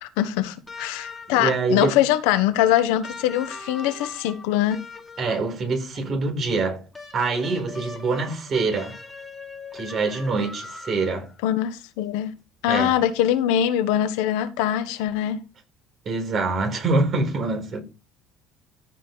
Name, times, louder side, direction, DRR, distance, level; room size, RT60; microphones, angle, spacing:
voice 1, 0.0-4.8 11.4-12.3 12.6-15.4, left 12 dB, 85° left, 1.3 m, -23 dB
sound 1, 0.7-1.6 3.0-5.6 6.9-11.4 12.8-12.9, left 3 dB, 15° left, 2.8 m, -40 dB
voice 2, 1.3-2.0 5.2-6.8 7.1-8.9 9.7-11.3 12.6-12.9 16.1-17.8, right 3 dB, 40° right, 4.2 m, -25 dB
14.5 x 5.1 x 4.0 m
supercardioid pair, 105°, 0 cm